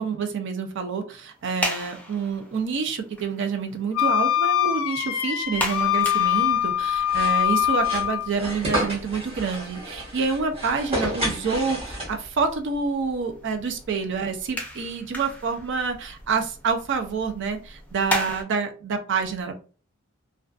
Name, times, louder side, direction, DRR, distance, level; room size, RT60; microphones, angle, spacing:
voice 1, 0.0-19.6, right 5 dB, 60° right, 5 dB, 0.4 m, -27 dB
sound 1, 1.3-18.4, equal, 10° left, 0.5 m, -37 dB
Wind instrument woodwind instrument, 3.9-8.3, left 11 dB, 65° left, 0.3 m, -23 dB
sound 2, 7.1-12.4, right 1 dB, 30° right, 1.0 m, -31 dB
2.5 x 2.2 x 2.3 m, 0.37 s
head